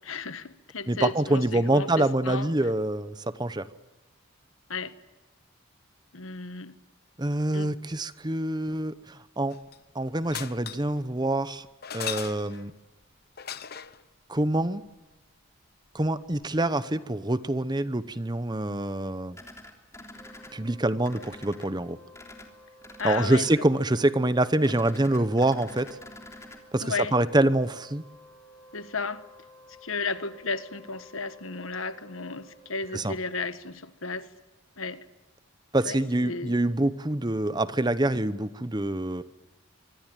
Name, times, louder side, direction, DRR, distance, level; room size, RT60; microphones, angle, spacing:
voice 1, 0.0-2.5 4.7-4.9 6.1-6.7 7.5-7.7 23.0-23.4 26.8-27.1 28.7-29.2 29.8-34.3 34.8-35.0 35.8-36.6, left 4 dB, 75° left, 1.6 m, -34 dB
voice 2, 0.9-3.7 7.2-9.6 9.9-11.7 11.9-12.7 14.3-14.8 15.9-19.4 20.5-22.0 23.0-26.0 26.7-28.0 32.9-33.1 35.7-39.2, right 1 dB, 20° right, 0.9 m, -26 dB
sound 1, 9.5-9.9 10.3-11.0 11.8-12.7 13.4-14.0 16.1-16.2 16.4-16.5, left 9 dB, 50° left, 1.0 m, -37 dB
sound 2, 19.3-20.5 21.0-21.7 22.1-22.5 22.8-23.5 24.6-26.6, left 1 dB, 15° left, 3.3 m, -46 dB
Wind instrument woodwind instrument, 20.1-33.5, equal, ahead, 7.2 m, -54 dB
25.0 x 24.0 x 9.1 m
head